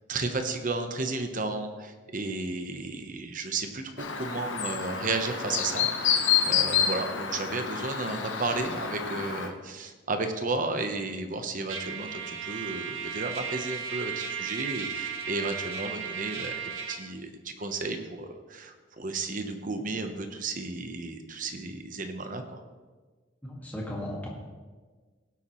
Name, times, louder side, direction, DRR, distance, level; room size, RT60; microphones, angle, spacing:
voice 1, 0.1-16.6 16.9-22.6, right 3 dB, 40° right, 6 dB, 1.0 m, -33 dB
Chirp tweet, 4.0-9.5, left 7 dB, 70° left, 1.0 m, -28 dB
Trumpet, 11.7-17.0, right 7 dB, 75° right, 1.0 m, -35 dB
voice 2, 23.4-24.3, left 1 dB, 10° left, -3 dB, 1.9 m, -36 dB
17.5 x 8.2 x 3.1 m, 1.4 s
head